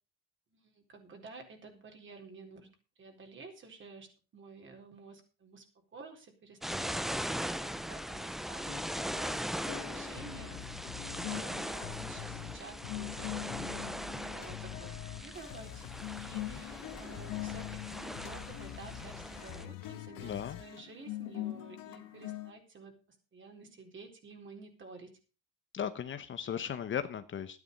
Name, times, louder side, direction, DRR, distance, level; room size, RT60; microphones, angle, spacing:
voice 1, 0.5-2.7 3.0-5.7 5.9-23.0 23.3-25.1, right 4 dB, 35° right, 3 dB, 4.1 m, -52 dB
sound 1, 6.6-19.7, equal, ahead, 0.5 m, -40 dB
sound 2, 8.6-22.5, left 16 dB, 90° left, 2.0 m, -44 dB
sound 3, 10.2-11.3 11.8-14.2 14.4-20.8, left 16 dB, 70° left, 1.1 m, -47 dB
voice 2, 20.2-20.6 25.7-27.6, left 8 dB, 35° left, 10 dB, 1.0 m, -36 dB
12.5 x 9.8 x 5.4 m, 0.34 s
cardioid pair, 130°, 33 cm